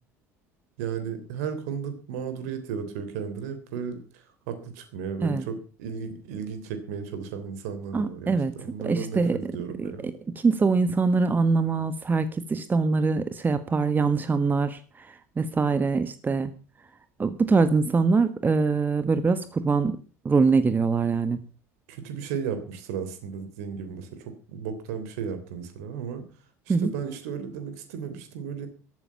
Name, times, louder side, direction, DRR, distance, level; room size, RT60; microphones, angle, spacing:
voice 1, 0.8-10.1 21.9-26.2 26.7-28.7, right 7 dB, 65° right, 9 dB, 3.3 m, -34 dB
voice 2, 7.9-8.5 8.8-9.4 9.8-9.9 10.4-16.5 17.2-20.0 20.2-21.4 26.7-26.9, right 4 dB, 20° right, 12 dB, 1.4 m, -23 dB
15.0 x 12.5 x 5.8 m, 0.37 s
figure-of-eight pair, 70°, 9 cm